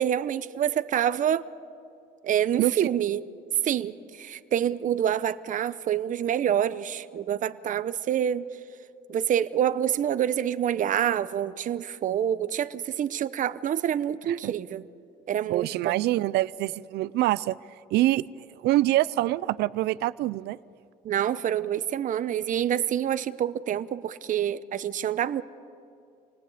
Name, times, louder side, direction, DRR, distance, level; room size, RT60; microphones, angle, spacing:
voice 1, 0.0-1.4 2.2-3.2 3.6-8.5 9.1-14.9 15.3-16.0 21.0-25.4, right 10 dB, 50° right, 14 dB, 0.8 m, -27 dB
voice 2, 15.5-17.6 17.9-18.2 18.6-20.6, right 16 dB, 80° right, 19 dB, 0.5 m, -25 dB
28.0 x 19.0 x 8.5 m, 2.4 s
cardioid pair, 110°, 17 cm